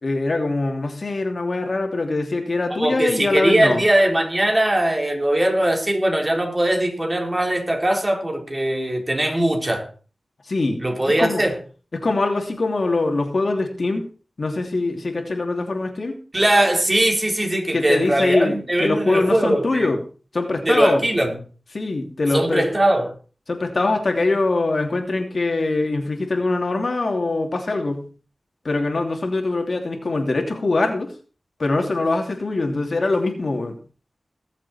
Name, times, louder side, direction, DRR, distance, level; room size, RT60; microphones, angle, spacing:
voice 1, 0.0-3.8 10.4-10.8 11.1-11.4 11.9-14.1 14.4-16.1 17.7-20.0 20.3-21.0 21.7-22.7 23.5-28.1 28.6-31.1 31.6-33.8, left 2 dB, 65° left, 2.9 m, -23 dB
voice 2, 2.8-9.9 10.8-11.5 16.3-19.9 20.7-21.3 22.3-23.1, right 1 dB, 30° right, 4.2 m, -20 dB
20.5 x 7.5 x 4.4 m
wide cardioid pair, 55°, 0 cm